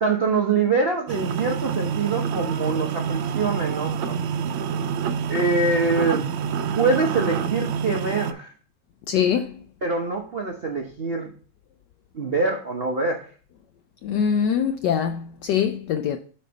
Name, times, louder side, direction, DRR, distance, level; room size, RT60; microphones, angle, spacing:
voice 1, 0.0-4.3 5.3-6.3 6.7-8.5 9.8-11.3 12.1-13.2, right 3 dB, 60° right, 0.6 m, -24 dB
sound 1, 1.1-8.3, right 7 dB, 75° right, 1.4 m, -27 dB
voice 2, 9.1-9.6 14.0-16.2, left 8 dB, 75° left, 1.0 m, -23 dB
9.0 x 4.4 x 4.0 m
omnidirectional pair, 2.3 m